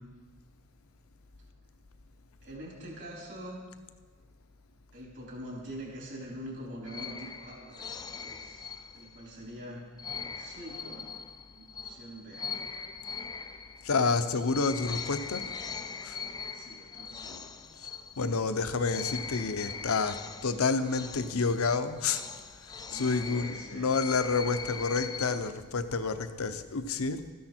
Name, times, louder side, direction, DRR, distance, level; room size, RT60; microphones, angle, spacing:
voice 1, 2.4-3.6 4.9-9.8 10.3-11.1 11.5-12.5 16.5-17.5 22.9-24.0, right 1 dB, 55° right, -3 dB, 4.1 m, -44 dB
sound 1, 6.9-9.3 10.0-18.6 18.9-25.4, left 6 dB, 20° left, 0.3 m, -41 dB
voice 2, 13.8-15.5 16.0-16.2 18.2-22.2 22.9-27.2, left 4 dB, 65° left, 10 dB, 0.7 m, -29 dB
13.5 x 10.5 x 4.4 m, 1.5 s
head